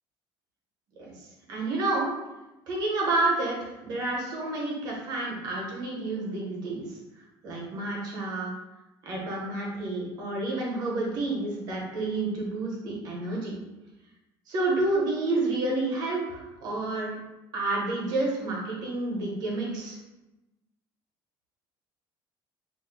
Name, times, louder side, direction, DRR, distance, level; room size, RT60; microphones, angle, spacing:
voice 1, 1.5-2.1 2.7-6.9 7.4-8.5 9.0-13.5 14.5-17.1 17.5-20.0, right 2 dB, 45° right, -3 dB, 0.9 m, -29 dB
2.6 x 2.0 x 3.9 m, 1.0 s
cardioid pair, 180°, 9 cm